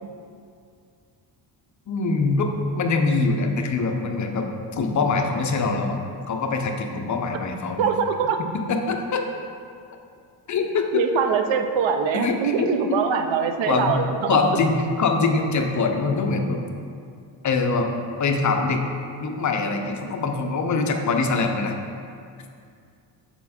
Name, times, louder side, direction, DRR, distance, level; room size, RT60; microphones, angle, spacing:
voice 1, 1.9-6.0 6.3-7.9 8.7-9.2 10.5-11.0 12.1-13.2 13.7-14.0 14.3-16.6 17.4-17.9 18.2-18.8 19.2-21.7, left 4 dB, 45° left, 4 dB, 0.6 m, -23 dB
voice 2, 7.8-8.4 10.9-14.4, right 6 dB, 85° right, 7 dB, 0.7 m, -23 dB
7.3 x 4.5 x 4.2 m, 2.4 s
cardioid pair, 130°, 43 cm